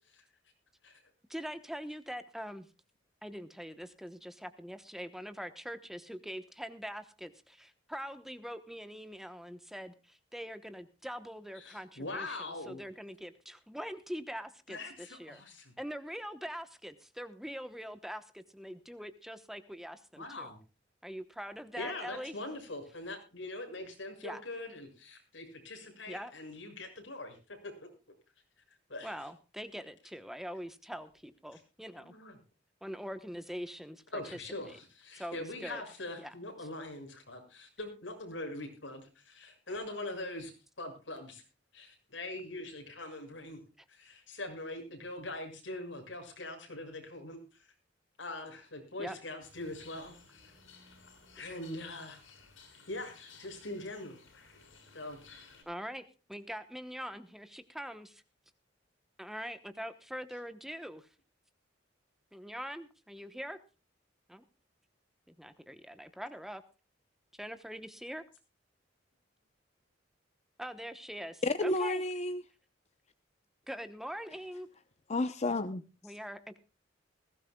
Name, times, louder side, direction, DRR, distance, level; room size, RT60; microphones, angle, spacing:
voice 1, 1.3-2.7 3.2-15.4 15.8-20.5 21.0-22.3 24.2-24.4 26.1-26.3 29.0-32.1 32.8-34.0 34.3-34.4 34.6-34.8 35.1-35.8 36.2-36.3 49.0-49.2 55.7-56.0 56.3-58.2 59.2-61.1 62.3-63.6 64.3-64.4 65.3-66.6 67.3-68.2 70.6-72.0 73.7-74.7 76.0-76.6, equal, ahead, 10 dB, 1.0 m, -43 dB
voice 2, 11.6-12.8 14.7-15.7 20.2-20.6 21.8-27.4 27.6-27.9 28.9-29.1 32.0-32.4 34.1-40.5 40.8-41.4 41.7-43.6 43.9-47.6 48.2-50.1 51.3-52.2 52.9-54.2 54.9-55.2, left 2 dB, 75° left, 3 dB, 6.7 m, -42 dB
sound 1, 49.4-55.6, left 4 dB, 90° left, 7.4 m, -57 dB
voice 3, 71.4-72.4 75.1-76.1, left 2 dB, 35° left, 10 dB, 0.8 m, -31 dB
20.5 x 17.0 x 2.3 m, 0.32 s
head